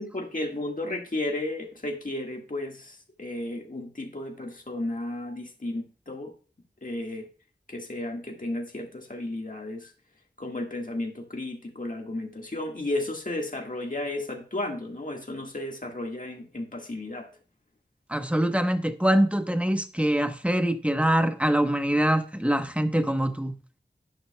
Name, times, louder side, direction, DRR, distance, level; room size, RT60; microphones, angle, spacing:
voice 1, 0.0-6.3 6.8-7.3 7.7-9.9 10.4-17.3, left 1 dB, 45° left, 1.6 m, -33 dB
voice 2, 18.1-23.5, right 1 dB, 5° right, 1.0 m, -24 dB
12.0 x 9.3 x 2.2 m
wide cardioid pair, 50°, 19 cm